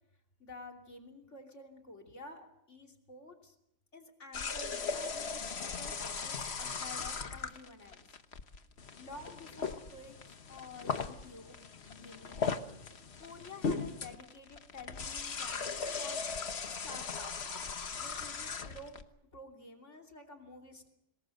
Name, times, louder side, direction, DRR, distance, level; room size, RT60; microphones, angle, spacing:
voice 1, 0.4-3.5 3.9-8.2 9.0-11.6 11.9-12.4 13.2-16.2 16.6-17.3 18.0-19.0 19.3-20.9, left 2 dB, 80° left, 2 dB, 3.4 m, -50 dB
sound 1, 4.3-19.0, left 5 dB, 65° left, 1.5 m, -38 dB
26.0 x 20.5 x 6.6 m, 0.78 s
omnidirectional pair, 1.2 m